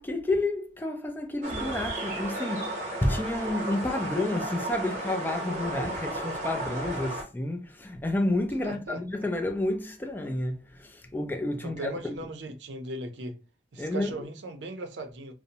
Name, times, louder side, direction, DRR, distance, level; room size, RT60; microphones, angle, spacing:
voice 1, 0.0-12.2 13.8-14.1, left 1 dB, 10° left, 0.3 m, -30 dB
sound 1, 1.4-7.2, right 1 dB, 45° right, 0.8 m, -34 dB
voice 2, 8.6-9.0 11.6-13.3 13.7-15.3, right 2 dB, 80° right, 0.5 m, -38 dB
2.6 x 2.0 x 2.7 m
head